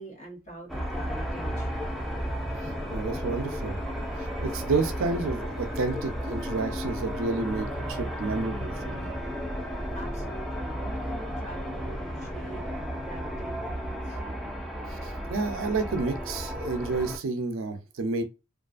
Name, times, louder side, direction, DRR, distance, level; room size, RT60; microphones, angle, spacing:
voice 1, 0.0-1.7 9.9-14.6, right 1 dB, 30° left, 1.0 m, -44 dB
sound 1, 0.7-17.2, equal, ahead, 0.4 m, -33 dB
voice 2, 2.6-3.8 4.4-9.1 15.3-18.2, right 3 dB, 70° right, 0.5 m, -30 dB
2.5 x 2.4 x 2.4 m
head